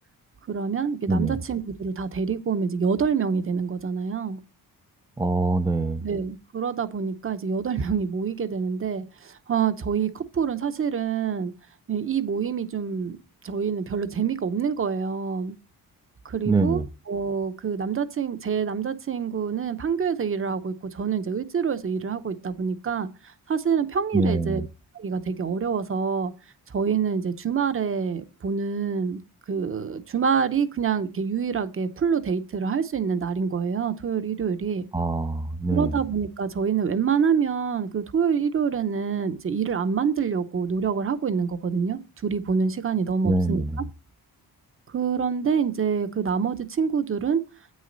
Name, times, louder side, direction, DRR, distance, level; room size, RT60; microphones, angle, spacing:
voice 1, 0.5-4.4 6.0-9.0 9.5-11.5 11.9-13.2 13.4-15.5 16.3-23.1 23.5-24.6 25.0-26.3 26.7-29.2 29.5-34.9 35.7-43.6 44.9-47.4, right 6 dB, 35° right, 0.7 m, -26 dB
voice 2, 1.1-1.4 5.2-6.0 16.5-16.9 24.1-24.7 34.9-36.0 43.2-43.8, right 3 dB, 10° right, 0.3 m, -24 dB
8.9 x 6.4 x 3.8 m
wide cardioid pair, 165°, 37 cm